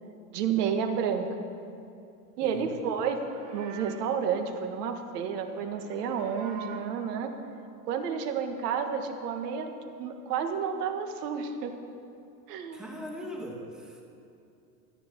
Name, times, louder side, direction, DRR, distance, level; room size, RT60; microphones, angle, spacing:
voice 1, 0.3-1.3 2.4-3.2 3.5-7.3 7.9-9.7 10.0-11.8 12.5-12.9, right 7 dB, 80° right, 5 dB, 1.7 m, -30 dB
voice 2, 2.4-2.7 12.7-14.0, equal, ahead, -1 dB, 1.5 m, -39 dB
Livestock farm animals working animals, 3.1-4.2 5.5-7.0, right 7 dB, 40° right, 2.8 m, -46 dB
14.0 x 10.0 x 6.8 m, 2.6 s
supercardioid pair, 160°, 46 cm